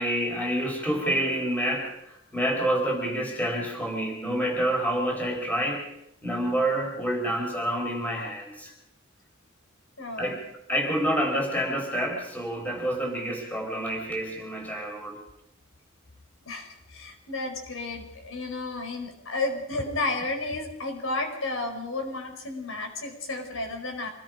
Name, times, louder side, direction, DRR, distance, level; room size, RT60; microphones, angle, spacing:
voice 1, 0.0-5.9 6.2-8.7 10.2-10.4 10.7-15.2, right 1 dB, 10° left, 1 dB, 4.5 m, -28 dB
voice 2, 10.0-10.4 16.4-24.1, left 2 dB, 75° left, 4 dB, 5.3 m, -32 dB
26.5 x 20.0 x 5.2 m, 0.84 s
head